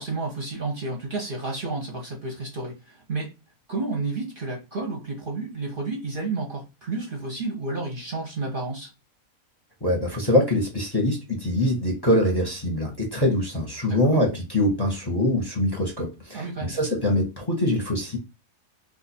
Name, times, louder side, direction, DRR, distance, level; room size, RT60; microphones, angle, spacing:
voice 1, 0.0-3.3 3.7-8.9 13.9-14.2 16.3-16.8, right 3 dB, 45° right, 0.8 m, -31 dB
voice 2, 9.8-18.2, left 1 dB, 20° left, 0.9 m, -24 dB
2.6 x 2.5 x 4.1 m
omnidirectional pair, 1.4 m